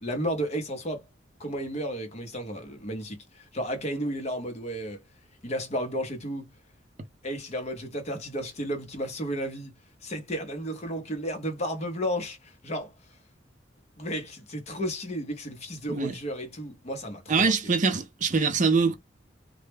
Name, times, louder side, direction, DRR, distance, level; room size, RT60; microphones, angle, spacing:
voice 1, 0.0-1.0 1.4-5.0 5.4-6.5 7.2-9.7 10.0-12.9 14.0-17.5, equal, 35° left, 0.7 m, -33 dB
voice 2, 17.3-18.9, right 4 dB, 45° right, 0.5 m, -23 dB
2.1 x 2.1 x 3.2 m
head